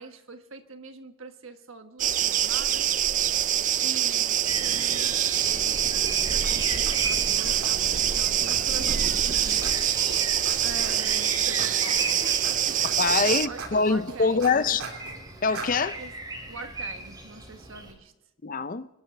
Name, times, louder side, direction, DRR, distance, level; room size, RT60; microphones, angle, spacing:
voice 1, 0.0-2.9 3.8-6.0 6.3-9.7 10.6-12.8 13.3-14.5 16.0-16.1 16.5-18.1, right 3 dB, 65° right, 1.4 m, -43 dB
sound 1, 2.0-13.5, right 10 dB, 35° right, 0.4 m, -25 dB
sound 2, 4.4-17.9, right 2 dB, 15° right, 3.2 m, -38 dB
sound 3, 6.0-6.1 6.4-6.5 6.9-7.2 7.6-7.7 8.1-8.2 8.5-8.6 8.9-9.2 9.6-9.7 10.1-10.2 10.5-10.6 10.8-11.2 11.6-11.7 12.1-12.5 12.8-13.2 13.6-13.7 14.1-15.2 15.5-15.7, right 4 dB, 85° right, 3.2 m, -38 dB
voice 2, 13.0-14.8 15.4-16.0 18.4-18.9, left 4 dB, 40° left, 0.5 m, -24 dB
25.5 x 12.5 x 3.3 m
head